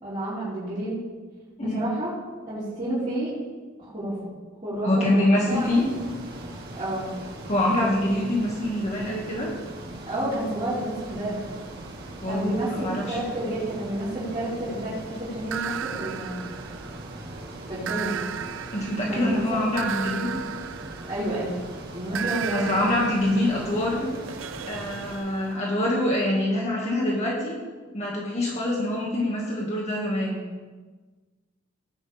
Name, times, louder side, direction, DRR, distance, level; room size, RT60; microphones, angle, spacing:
voice 1, 0.0-1.0 1.6-2.1 2.5-3.3 3.8-4.2 4.6-5.7 6.7-7.1 10.1-11.4 12.3-16.4 17.7-18.3 19.1-19.6 21.1-21.6 21.9-22.7, right 1 dB, 25° right, -14 dB, 5.1 m, -30 dB
voice 2, 4.8-5.9 7.5-9.5 12.2-12.5 12.8-13.2 18.7-20.3 22.5-24.1 24.7-27.6 27.9-30.4, left 1 dB, 35° left, -4 dB, 2.1 m, -25 dB
Ocean, 5.5-25.1, right 1 dB, 55° right, 2.1 m, -40 dB
sound 1, 15.5-17.2 17.9-21.5 22.2-25.9, right 8 dB, 70° right, 0.5 m, -35 dB
18.0 x 11.5 x 3.6 m, 1.3 s
head